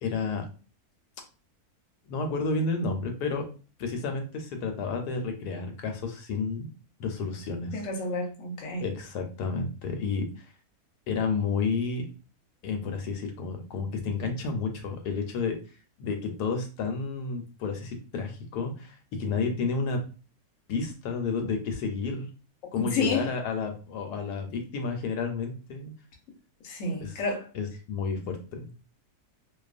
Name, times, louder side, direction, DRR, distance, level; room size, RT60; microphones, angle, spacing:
voice 1, 0.0-0.4 2.1-3.5 3.8-6.7 7.0-7.8 8.8-10.5 11.1-12.1 12.6-15.6 16.0-20.0 20.7-22.3 22.7-25.9 27.0-27.1 27.5-28.7, left 4 dB, 90° left, 1.2 m, -31 dB
voice 2, 7.7-8.8 22.8-23.3 26.6-27.5, left 3 dB, 60° left, 1.0 m, -30 dB
2.5 x 2.3 x 2.4 m
omnidirectional pair, 1.6 m